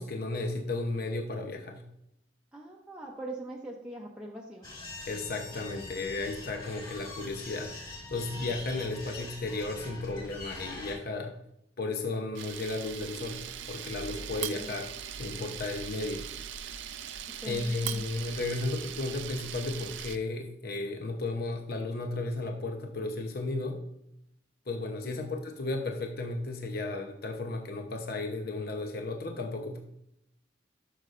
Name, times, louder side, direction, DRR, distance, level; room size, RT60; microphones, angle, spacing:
voice 1, 0.0-1.8 5.1-11.3 11.8-13.4 13.7-14.9 15.2-16.2 17.5-23.8 24.7-29.8, left 2 dB, 55° left, 3 dB, 0.8 m, -34 dB
voice 2, 2.5-4.7 14.4-14.7 17.4-18.0 25.0-25.3, right 1 dB, 5° right, -3 dB, 0.7 m, -42 dB
sound 1, 4.6-10.9, left 2 dB, 25° left, 3.1 m, -43 dB
Camera, 12.3-20.2, right 9 dB, 75° right, 0.5 m, -40 dB
12.0 x 6.4 x 2.5 m, 0.80 s
head